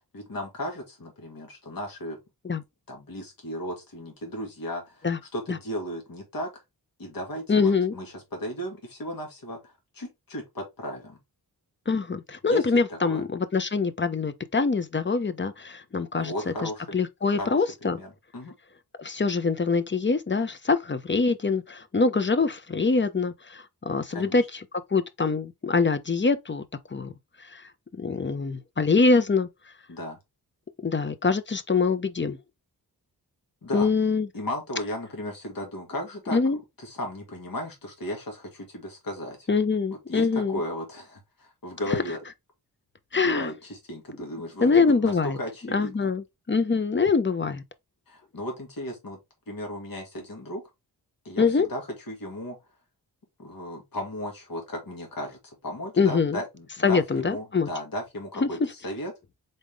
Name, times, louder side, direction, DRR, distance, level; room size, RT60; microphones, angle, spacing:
voice 1, 0.1-2.2 2.5-5.1 5.3-6.5 7.0-11.2 12.5-12.6 12.9-13.2 16.2-17.0 17.3-18.5 24.1-24.4 29.9-30.2 33.6-33.9 34.3-36.4 36.8-39.5 40.1-42.2 43.2-46.1 48.1-49.2 49.5-50.6 51.2-52.6 53.4-59.1, equal, 60° left, 2.0 m, -35 dB
voice 2, 7.5-7.9 11.9-18.0 19.0-24.6 24.9-26.6 26.9-27.1 27.5-27.6 28.0-29.5 30.8-32.4 33.7-34.3 36.3-36.6 39.5-40.6 41.9-42.0 43.1-43.5 44.6-45.4 45.7-47.6 51.4-51.7 56.0-56.4 56.8-57.7 58.4-58.5, left 4 dB, 30° left, 0.7 m, -24 dB
4.0 x 3.6 x 3.4 m
cardioid pair, 55°, 40 cm